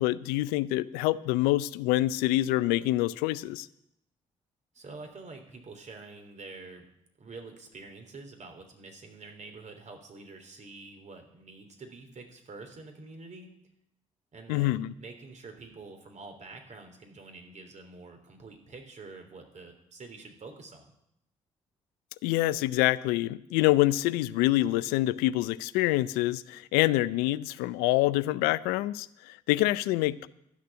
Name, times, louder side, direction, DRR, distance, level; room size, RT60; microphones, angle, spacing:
voice 1, 0.0-3.7 14.5-14.9 22.2-30.3, left 17 dB, 85° left, 17 dB, 0.5 m, -26 dB
voice 2, 4.7-6.9 7.2-13.5 14.3-20.8, right 3 dB, 50° right, 5 dB, 3.3 m, -47 dB
13.0 x 6.7 x 9.8 m, 0.79 s
hypercardioid pair, 45°, 15 cm